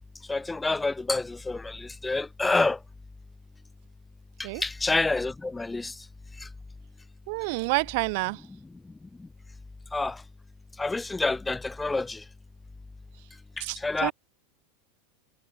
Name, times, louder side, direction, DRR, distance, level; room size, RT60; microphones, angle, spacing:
voice 1, 0.3-2.8 4.4-6.0 6.4-6.5 9.2-9.3 9.9-10.2 10.8-12.2 13.6-14.1, left 3 dB, 10° left, 3.4 m, -28 dB
voice 2, 7.3-8.4 13.6-14.1, right 28 dB, 60° right, 4.8 m, -28 dB
supercardioid pair, 135°, 0 cm